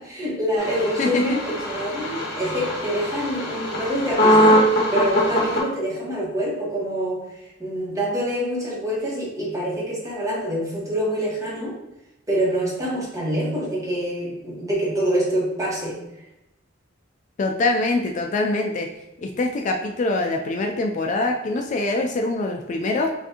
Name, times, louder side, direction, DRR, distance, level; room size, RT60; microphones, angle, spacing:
voice 1, 0.0-7.2 7.6-11.8 12.3-16.0, equal, 15° right, -5 dB, 1.2 m, -26 dB
sound 1, 0.6-5.6, equal, 55° left, 1.3 m, -22 dB
voice 2, 1.0-1.4 17.4-18.9 19.2-23.1, left 2 dB, 40° left, 2 dB, 0.3 m, -24 dB
5.5 x 2.6 x 2.8 m, 0.92 s
head